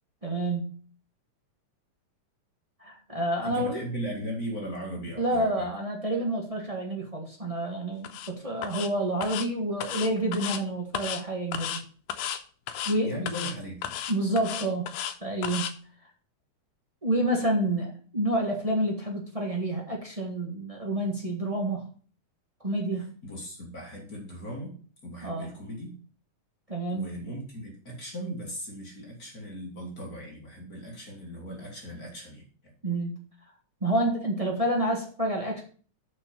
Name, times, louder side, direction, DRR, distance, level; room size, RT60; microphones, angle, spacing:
voice 1, 0.2-0.7 2.8-3.8 5.2-11.8 12.8-13.2 14.1-14.9 15.2-15.7 17.0-21.9 22.6-23.1 25.2-25.5 26.7-27.2 32.8-33.1 33.8-35.6, right 1 dB, 25° right, 0 dB, 0.7 m, -28 dB
voice 2, 3.4-5.7 13.0-14.0 23.2-24.7 25.0-25.9 26.9-32.4, equal, 35° left, -1 dB, 2.3 m, -38 dB
sound 1, 8.0-8.3 8.6-8.9 9.2-9.5 9.8-10.6 10.9-11.2 11.5-11.8 12.1-12.4 12.7-12.9 13.3-13.5 13.8-15.1 15.4-15.7, left 10 dB, 90° left, 2.2 m, -34 dB
6.3 x 6.2 x 6.9 m, 0.42 s
omnidirectional pair, 3.5 m